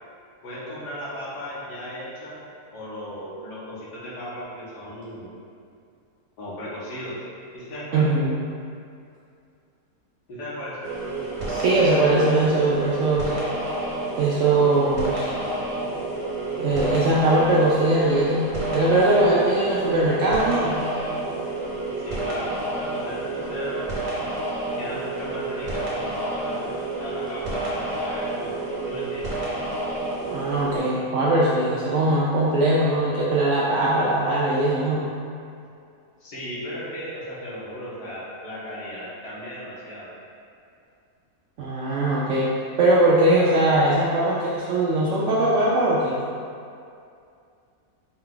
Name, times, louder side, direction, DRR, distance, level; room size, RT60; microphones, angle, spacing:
voice 1, 0.4-2.4 2.7-5.3 6.4-7.2 7.5-8.1 10.3-10.9 22.0-23.9 24.8-28.5 28.9-29.3 36.2-40.1, equal, 85° left, -7 dB, 1.6 m, -36 dB
voice 2, 7.9-8.4 11.5-13.4 14.2-15.4 16.6-18.5 18.7-20.8 30.3-35.1 41.6-42.5 42.8-46.2, right 2 dB, 70° right, -7 dB, 0.7 m, -21 dB
sound 1, 10.8-30.8, right 2 dB, 45° right, 1.3 m, -29 dB
4.7 x 2.3 x 3.7 m, 2.4 s
omnidirectional pair, 1.7 m